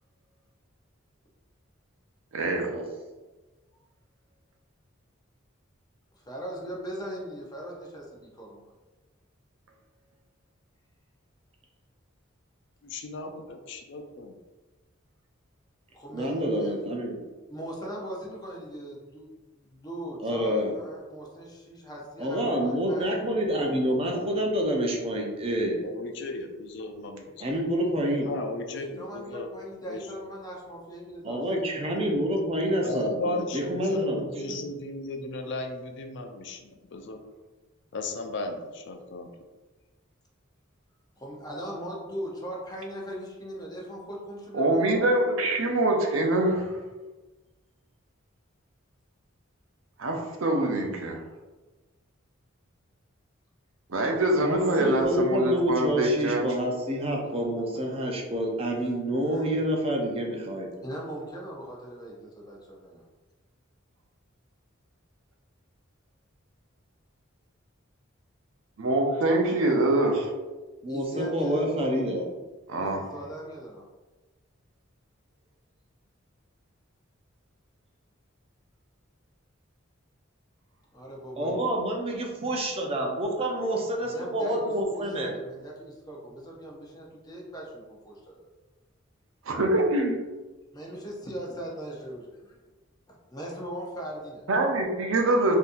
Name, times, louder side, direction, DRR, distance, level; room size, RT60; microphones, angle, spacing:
voice 1, 2.3-2.7 44.5-46.8 50.0-51.2 53.9-56.5 68.8-70.3 72.7-73.0 89.5-90.1 94.5-95.6, right 1 dB, 80° right, 2 dB, 0.6 m, -24 dB
voice 2, 6.3-8.6 15.9-16.7 17.5-19.3 19.6-23.1 28.7-31.4 41.2-44.9 59.3-59.5 60.8-63.0 70.9-71.8 72.7-73.8 80.9-81.7 84.0-88.4 90.7-92.6 93.3-94.5, right 1 dB, 20° left, -2 dB, 0.6 m, -39 dB
voice 3, 12.8-14.4 25.8-27.5 28.2-29.5 29.9-30.1 32.8-37.2 37.9-39.3, left 2 dB, 60° left, 6 dB, 0.4 m, -35 dB
voice 4, 16.1-17.2 20.2-20.7 22.2-25.8 27.4-28.3 31.2-34.6 54.4-60.7 70.8-72.3 81.4-85.3, equal, 30° right, 0 dB, 0.5 m, -28 dB
3.9 x 2.7 x 2.5 m, 1.2 s
head